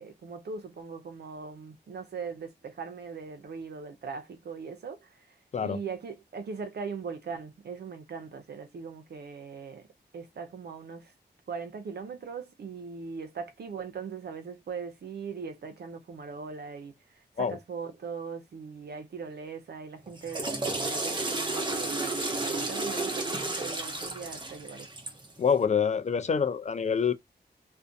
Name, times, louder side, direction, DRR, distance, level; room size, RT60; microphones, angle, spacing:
voice 1, 0.0-9.9 10.1-11.1 11.5-24.9, right 5 dB, 70° right, 0.5 m, -40 dB
Water / Toilet flush, 20.1-25.3, right 2 dB, 25° right, 0.8 m, -32 dB
voice 2, 25.4-27.1, left 6 dB, 40° left, 0.4 m, -26 dB
2.5 x 2.1 x 2.5 m
cardioid pair, 75°, 18 cm